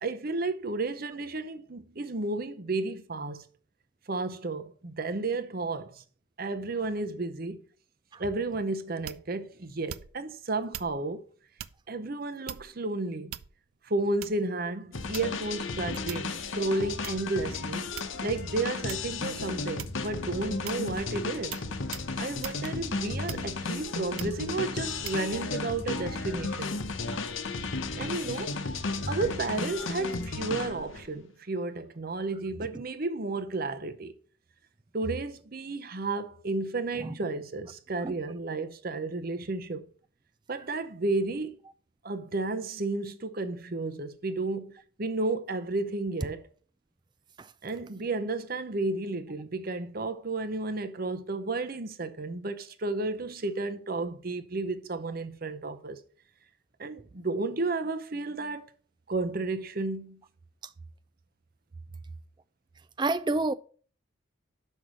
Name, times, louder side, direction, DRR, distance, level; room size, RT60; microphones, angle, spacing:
voice 1, 0.0-3.4 4.1-6.0 6.4-7.6 8.2-11.2 11.9-13.3 13.8-17.9 18.2-21.6 22.2-26.8 27.9-28.6 29.1-34.1 34.9-39.9 40.5-41.6 42.0-44.7 45.0-46.4 47.6-56.0 56.8-58.6 59.1-60.2, right 3 dB, 45° right, 0.7 m, -32 dB
sound 1, 9.0-9.4 9.9-10.3 10.7-11.0 11.6-11.8 12.5-12.8 13.3-13.7 14.2-14.5 15.1-15.5 16.1-16.4 17.0-17.2 18.0-18.4 18.9-19.1 19.8-20.1 20.7-20.9 21.5-21.7 21.9-22.1 22.4-22.6 23.3-23.7 24.2-24.4 25.0-25.2, right 11 dB, 85° right, 0.5 m, -41 dB
sound 2, 14.9-31.1, left 3 dB, 70° left, 0.9 m, -34 dB
voice 2, 63.0-63.5, right 2 dB, 20° right, 0.3 m, -29 dB
6.3 x 5.5 x 6.3 m
head